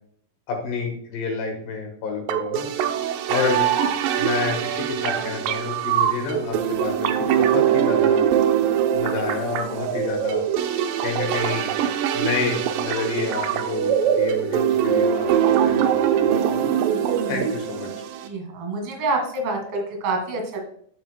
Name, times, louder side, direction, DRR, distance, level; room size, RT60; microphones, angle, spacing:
voice 1, 0.5-2.7 3.3-3.7 4.2-8.2 8.9-10.4 11.0-11.7 12.1-16.7 17.3-17.9, left 5 dB, 90° left, 1 dB, 3.2 m, -29 dB
sound 1, 2.3-18.3, right 9 dB, 85° right, 2.3 m, -22 dB
voice 2, 18.2-20.6, right 2 dB, 50° right, 2 dB, 2.4 m, -27 dB
9.2 x 7.9 x 2.3 m, 0.62 s
omnidirectional pair, 3.9 m